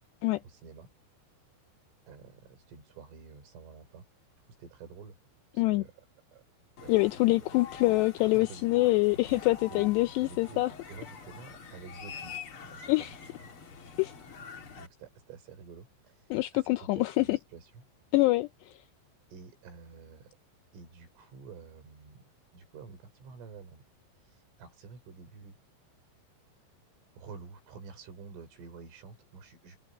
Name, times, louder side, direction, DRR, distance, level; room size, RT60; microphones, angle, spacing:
voice 1, 0.4-0.9 2.1-4.1 4.6-5.2 5.5-6.1 6.3-6.4 6.8-7.5 7.8-8.6 9.7-9.9 10.2-13.1 14.8-17.8 19.3-20.4 20.7-23.9 24.2-25.6 27.1-29.8, right 5 dB, 90° right, 8.0 m, -49 dB
sound 1, 6.8-14.9, left 6 dB, 50° left, 1.7 m, -46 dB
voice 2, 6.9-10.7 12.9-13.1 14.0-14.1 16.3-17.4 18.1-18.7, left 20 dB, 85° left, 2.4 m, -25 dB
omnidirectional pair, 5.6 m